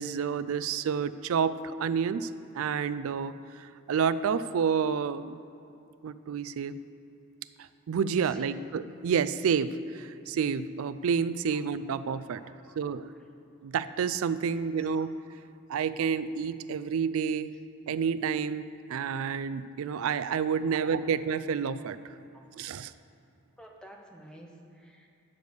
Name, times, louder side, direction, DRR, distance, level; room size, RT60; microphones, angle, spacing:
voice 1, 0.0-2.3 2.5-5.4 6.0-6.8 7.9-12.4 12.8-13.1 13.6-15.1 15.7-17.6 17.9-22.0 22.6-22.9, right 6 dB, 70° right, 13 dB, 0.3 m, -29 dB
voice 2, 8.2-8.6 11.5-11.6 12.3-12.9 14.8-15.1 20.6-20.8 22.3-22.4 23.6-25.1, right 1 dB, 5° left, 1 dB, 0.7 m, -51 dB
9.5 x 5.2 x 6.5 m, 2.7 s
head